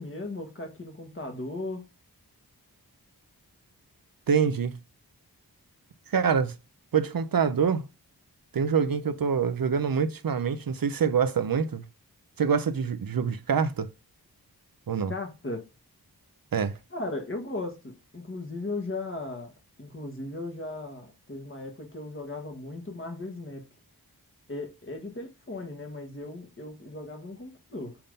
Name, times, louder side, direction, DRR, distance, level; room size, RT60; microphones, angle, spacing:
voice 1, 0.0-1.8 15.1-15.6 16.9-19.5 19.8-23.6 24.5-28.0, left 2 dB, 30° left, 1.6 m, -37 dB
voice 2, 4.3-4.8 6.1-6.5 6.9-7.8 8.5-11.8 12.4-13.9 14.9-15.1 16.5-16.8, right 6 dB, 60° right, 0.7 m, -25 dB
5.7 x 3.7 x 5.3 m
wide cardioid pair, 55°, 39 cm